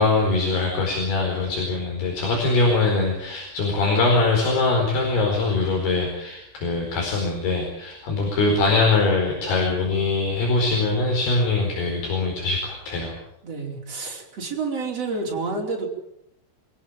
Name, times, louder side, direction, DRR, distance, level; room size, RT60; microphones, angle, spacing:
voice 1, 0.0-13.1, left 3 dB, 70° left, 0 dB, 6.7 m, -22 dB
voice 2, 13.4-15.9, right 4 dB, 40° right, 0 dB, 5.5 m, -29 dB
26.5 x 17.0 x 9.0 m, 0.79 s
omnidirectional pair, 4.7 m